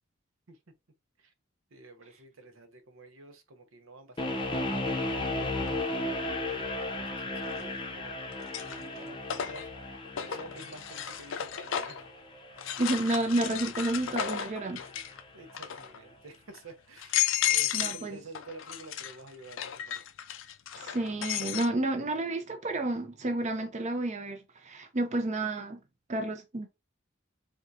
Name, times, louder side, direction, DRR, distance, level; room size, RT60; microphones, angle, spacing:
voice 1, 1.7-6.1 6.5-8.2 8.6-9.7 10.2-12.0 15.3-20.0, right 2 dB, 80° right, 0.9 m, -50 dB
sound 1, 4.2-15.2, left 2 dB, 25° left, 0.7 m, -36 dB
sound 2, 5.7-5.8 7.5-7.9 8.3-12.1 12.6-15.2 15.5-16.0 16.5-16.6 17.0-18.1 18.3-21.7, left 11 dB, 65° left, 0.4 m, -33 dB
voice 2, 12.8-14.8 17.7-18.2 20.8-25.8 26.1-26.7, right 2 dB, 35° right, 0.6 m, -30 dB
3.8 x 3.6 x 2.7 m
head